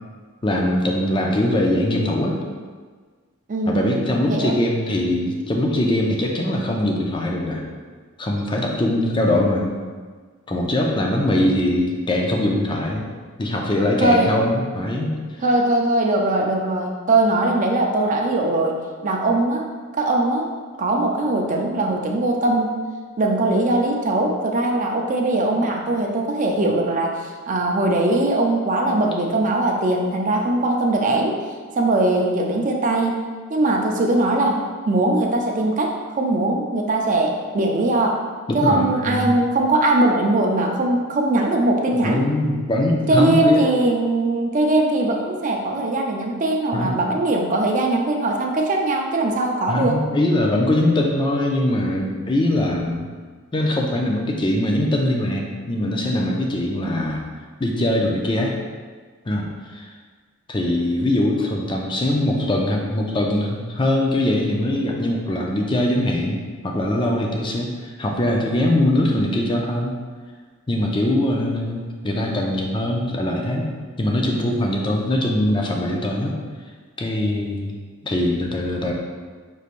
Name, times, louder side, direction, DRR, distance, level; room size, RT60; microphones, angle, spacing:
voice 1, 0.4-2.4 3.7-7.6 8.2-9.7 10.5-13.1 13.4-15.2 38.5-39.3 42.0-43.7 46.7-46.9 49.7-53.1 53.5-57.3 57.6-58.6 59.3-59.9 60.5-69.9 70.7-73.7 74.0-76.4 77.0-77.7 78.0-78.9, left 1 dB, 25° left, 0 dB, 0.5 m, -22 dB
voice 2, 3.5-4.0 4.3-4.6 14.0-14.3 15.4-19.7 20.0-20.5 20.8-22.7 23.2-31.4 31.7-33.2 33.5-34.6 34.9-38.2 38.5-42.2 43.1-50.0, right 2 dB, 35° right, 1 dB, 0.5 m, -20 dB
5.4 x 3.2 x 2.5 m, 1.5 s
head